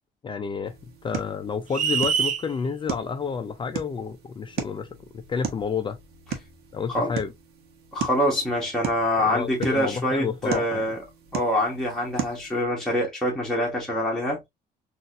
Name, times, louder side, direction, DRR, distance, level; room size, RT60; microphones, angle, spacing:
voice 1, 0.2-0.8 1.0-4.9 5.1-6.0 6.7-7.3 9.2-10.9, left 6 dB, 30° left, 0.4 m, -30 dB
sound 1, 0.6-12.6, right 7 dB, 70° right, 1.0 m, -37 dB
sound 2, 1.7-2.4, right 7 dB, 50° right, 0.5 m, -24 dB
voice 2, 7.9-11.0 11.3-14.4, left 1 dB, 5° left, 1.3 m, -25 dB
3.8 x 2.5 x 2.4 m
cardioid pair, 110°, 17 cm